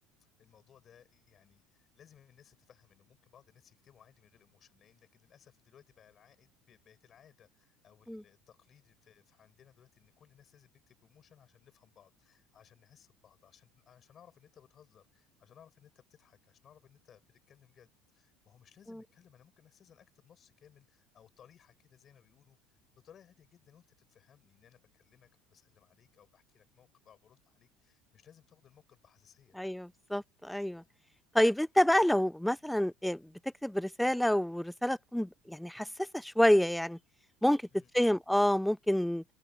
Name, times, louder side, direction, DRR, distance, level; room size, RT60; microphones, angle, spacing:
voice 1, 0.2-22.6 22.9-29.6 37.7-38.2, left 9 dB, 40° left, 6.8 m, -62 dB
voice 2, 29.6-30.8 31.3-33.2 33.6-35.9 36.1-37.0 37.4-37.6 37.9-39.2, left 1 dB, 5° left, 0.4 m, -28 dB
open air
hypercardioid pair, 70°, 0 cm